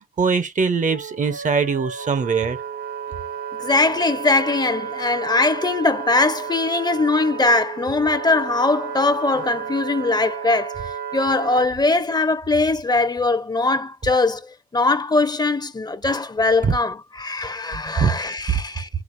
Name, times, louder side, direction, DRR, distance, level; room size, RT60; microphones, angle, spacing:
voice 1, 0.2-2.6 16.6-16.7 18.0-18.1, right 5 dB, 50° right, 0.7 m, -21 dB
Wind instrument woodwind instrument, 0.8-11.7, right 7 dB, 80° right, 0.9 m, -32 dB
voice 2, 3.6-10.8 11.1-18.9, left 3 dB, 25° left, 0.6 m, -21 dB
4.9 x 3.5 x 2.5 m
wide cardioid pair, 95°, 16 cm